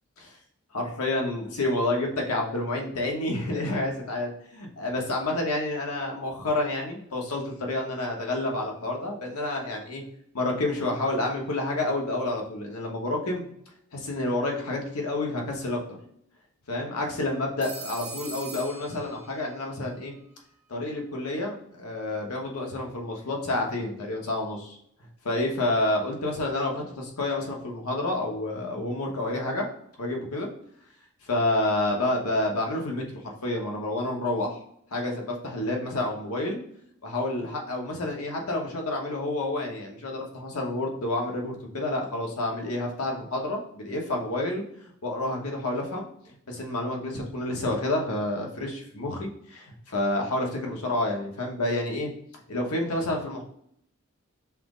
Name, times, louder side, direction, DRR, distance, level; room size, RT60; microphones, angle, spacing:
voice 1, 0.7-4.3 4.6-10.0 10.3-13.5 13.9-15.8 16.7-20.1 20.7-24.8 25.2-29.7 30.0-30.5 31.2-34.6 34.9-36.6 37.0-44.6 45.0-46.1 46.5-52.1 52.5-53.4, left 2 dB, 85° left, 1 dB, 1.0 m, -29 dB
Telephone, 17.6-19.7, right 4 dB, 70° right, 1.3 m, -41 dB
5.7 x 2.0 x 3.7 m, 0.71 s
head